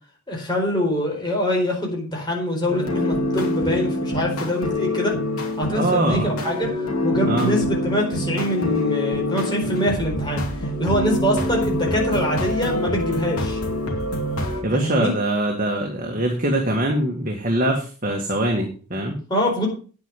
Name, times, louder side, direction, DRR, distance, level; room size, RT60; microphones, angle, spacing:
voice 1, 0.3-5.1 5.6-6.7 7.0-10.4 10.8-13.6 14.7-15.1 19.3-19.7, equal, 20° left, -1 dB, 4.4 m, -24 dB
sound 1, 2.7-14.6, left 1 dB, 75° left, 2.7 m, -25 dB
voice 2, 5.7-6.3 7.3-7.5 14.6-19.2, right 1 dB, 40° right, 1 dB, 1.8 m, -23 dB
9.7 x 9.1 x 5.3 m, 0.38 s
head